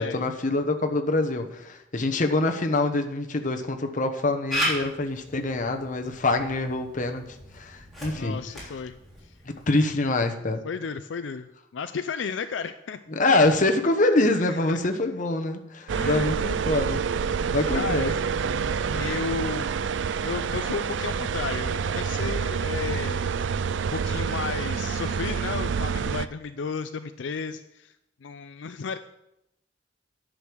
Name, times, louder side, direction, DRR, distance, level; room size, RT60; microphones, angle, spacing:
voice 1, 0.0-7.2 7.5-8.4 9.5-10.6 13.1-17.0 17.4-18.1, left 2 dB, 45° left, 5 dB, 1.0 m, -25 dB
Camera, 4.5-9.9, equal, ahead, 3.3 m, -35 dB
voice 2, 8.1-9.0 10.6-13.0 13.4-13.5 14.4-14.8 15.9-16.3 17.2-17.4 17.7-18.2 18.9-19.7 20.1-23.2 23.9-27.9 28.2-29.0, left 5 dB, 75° left, 10 dB, 0.5 m, -33 dB
sound 1, 15.9-26.3, right 6 dB, 75° right, 0.4 m, -27 dB
10.0 x 6.4 x 6.3 m, 0.84 s
head